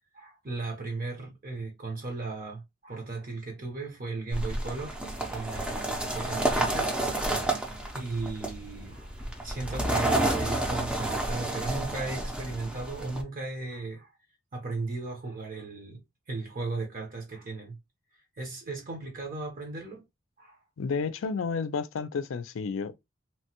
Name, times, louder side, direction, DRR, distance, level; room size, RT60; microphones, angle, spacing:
voice 1, 0.1-5.0 5.3-7.0 7.9-14.1 14.5-16.0 16.3-17.8 18.4-20.1 20.4-20.6, right 3 dB, 45° right, 0.8 m, -36 dB
sound 1, 4.3-13.2, right 1 dB, 5° right, 0.5 m, -30 dB
voice 2, 20.8-22.9, left 5 dB, 70° left, 0.4 m, -31 dB
2.9 x 2.1 x 2.9 m
head